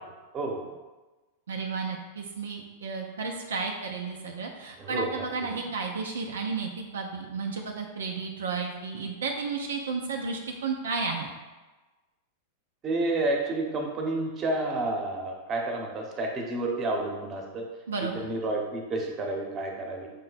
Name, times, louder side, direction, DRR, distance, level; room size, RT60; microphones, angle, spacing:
voice 1, 0.3-0.7 4.8-5.6 12.8-17.6 18.1-20.1, right 2 dB, 30° right, 1 dB, 0.9 m, -30 dB
voice 2, 1.5-11.3 17.9-18.3, right 4 dB, 85° right, 2 dB, 0.4 m, -32 dB
5.3 x 2.2 x 4.0 m, 1.2 s
hypercardioid pair, 105°, 0 cm